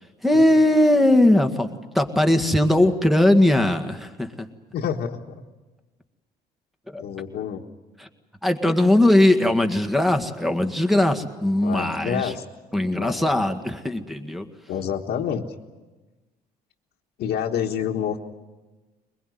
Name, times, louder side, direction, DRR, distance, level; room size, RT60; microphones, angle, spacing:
voice 1, 0.2-1.7 1.9-4.5 6.9-7.0 8.0-8.1 8.4-12.3 12.7-14.5, left 1 dB, ahead, 6 dB, 1.8 m, -19 dB
voice 2, 4.7-5.3 7.0-7.6 11.6-12.4 13.0-13.3 14.7-15.5 17.2-18.2, left 8 dB, 70° left, -2 dB, 1.5 m, -28 dB
22.5 x 21.0 x 9.3 m, 1.2 s
cardioid pair, 110°, 17 cm